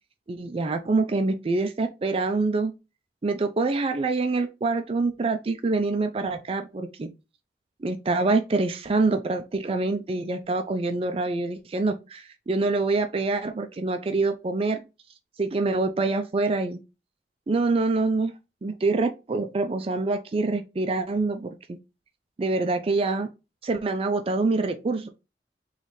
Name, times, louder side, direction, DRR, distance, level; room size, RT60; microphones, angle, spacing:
voice 1, 0.3-2.7 3.2-7.1 7.8-14.8 15.4-16.8 17.5-18.3 18.6-21.8 22.4-23.3 23.6-25.1, right 3 dB, 35° right, 0.4 m, -25 dB
3.9 x 3.2 x 3.1 m
head